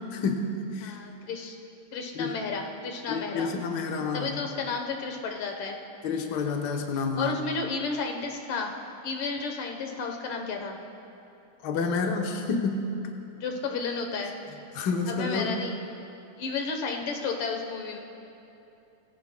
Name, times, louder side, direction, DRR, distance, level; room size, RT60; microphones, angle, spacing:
voice 1, 0.1-1.0 2.2-2.3 3.1-4.4 6.0-7.3 11.6-12.9 14.7-15.7, left 4 dB, 60° left, 2 dB, 1.4 m, -29 dB
voice 2, 0.8-1.6 1.9-3.5 4.1-5.8 7.0-8.7 9.0-10.8 13.4-14.3 15.1-15.7 16.4-18.0, left 4 dB, 80° left, 3 dB, 2.0 m, -32 dB
20.5 x 15.5 x 2.2 m, 2.7 s
omnidirectional pair, 2.3 m